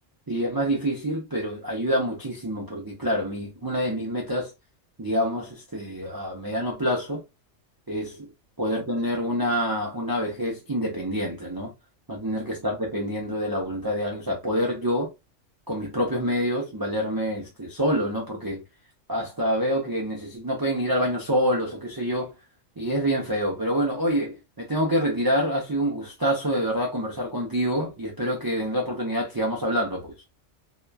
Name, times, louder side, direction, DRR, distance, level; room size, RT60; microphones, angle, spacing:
voice 1, 0.3-4.5 5.0-7.2 7.9-8.2 8.6-11.7 12.1-15.1 15.7-18.6 19.1-22.3 22.8-30.1, equal, 35° right, 0.3 m, -26 dB
2.9 x 2.2 x 2.2 m
omnidirectional pair, 1.3 m